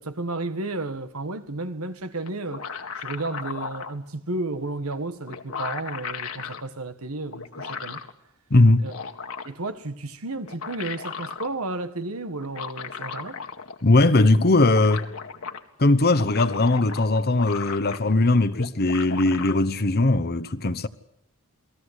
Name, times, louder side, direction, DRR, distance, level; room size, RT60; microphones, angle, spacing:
voice 1, 0.0-2.7 2.9-8.0 8.8-9.0 9.4-13.4, right 2 dB, 90° right, 1.6 m, -32 dB
sound 1, 2.3-4.0 4.9-5.0 5.3-6.6 7.3-8.1 8.7-9.7 10.3-11.5 12.4-13.9 14.2-14.3 14.5-15.6 16.0-18.2 18.5-19.5, left 5 dB, 70° left, 2.1 m, -36 dB
voice 2, 8.5-8.9 13.8-15.1 15.8-20.9, left 2 dB, 50° left, 1.1 m, -19 dB
29.0 x 19.0 x 8.3 m
head